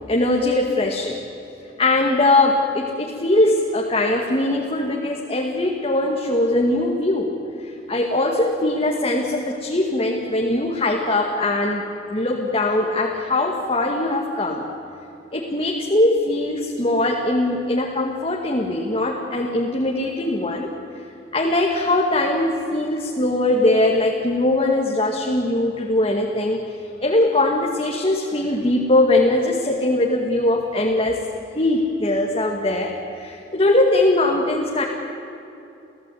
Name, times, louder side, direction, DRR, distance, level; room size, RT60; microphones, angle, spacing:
voice 1, 0.1-1.2 1.8-7.3 7.6-11.8 12.1-14.6 15.3-20.7 21.3-26.6 27.0-31.2 31.5-34.8, left 2 dB, 35° left, -1 dB, 2.2 m, -21 dB
29.5 x 16.5 x 9.4 m, 2.8 s
head